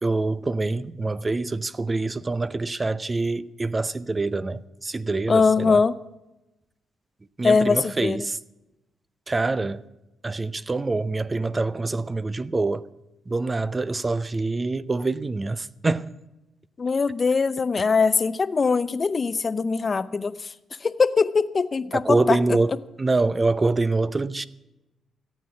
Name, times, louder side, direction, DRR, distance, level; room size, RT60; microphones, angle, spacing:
voice 1, 0.0-5.8 7.4-8.4 9.3-9.8 10.2-12.9 13.3-16.1 21.9-24.5, right 3 dB, 25° right, 0.6 m, -25 dB
voice 2, 5.3-6.0 7.4-8.2 16.8-20.5 20.8-22.4, left 4 dB, 40° left, 0.6 m, -22 dB
15.0 x 8.8 x 8.7 m
cardioid pair, 80°, 0 cm